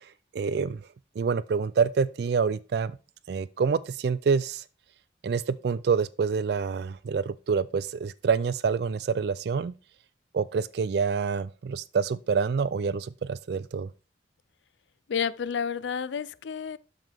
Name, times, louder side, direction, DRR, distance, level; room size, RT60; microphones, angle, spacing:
voice 1, 0.3-0.8 1.2-3.0 3.3-4.6 5.2-9.7 10.3-13.9, right 5 dB, 60° right, 0.3 m, -27 dB
voice 2, 15.1-16.8, left 7 dB, 80° left, 0.5 m, -30 dB
12.0 x 5.7 x 3.5 m
head